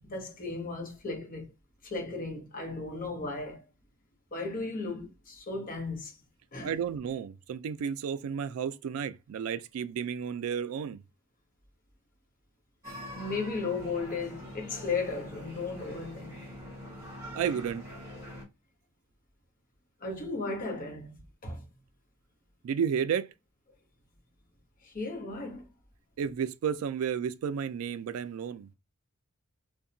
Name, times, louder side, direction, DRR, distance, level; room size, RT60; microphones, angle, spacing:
voice 1, 0.0-1.5 1.8-3.6 4.3-6.1 6.5-6.7 13.1-16.4 20.0-21.2 21.4-21.6 24.8-25.6, left 3 dB, 40° left, 0.8 m, -35 dB
voice 2, 6.6-11.0 17.3-17.8 22.6-23.3 26.2-28.7, right 7 dB, 75° right, 0.3 m, -32 dB
sound 1, 12.8-18.4, equal, 15° right, 1.2 m, -44 dB
2.7 x 2.2 x 2.5 m
head